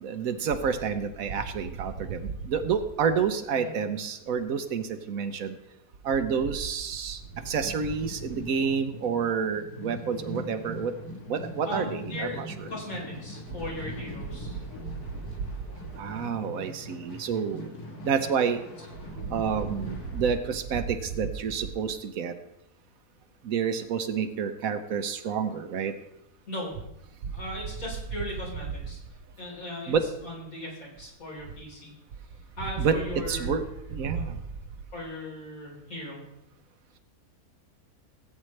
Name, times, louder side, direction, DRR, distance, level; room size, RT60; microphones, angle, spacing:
voice 1, 0.0-5.5 6.0-7.2 7.5-10.9 11.3-12.5 16.0-17.7 18.1-18.6 19.3-22.3 23.5-25.9 29.9-30.0 32.8-33.0 33.3-33.6 33.9-34.3, right 6 dB, 70° right, 9 dB, 1.2 m, -28 dB
sound 1, 7.1-20.3, left 1 dB, 85° left, 2.0 m, -42 dB
voice 2, 11.7-12.4 12.7-14.6 26.5-26.8 27.3-29.0 29.4-29.9 30.2-31.9 32.6-33.5 34.1-34.3 34.9-36.2, left 1 dB, 65° left, -5 dB, 4.4 m, -38 dB
17.5 x 8.7 x 3.2 m, 0.82 s
omnidirectional pair, 1.6 m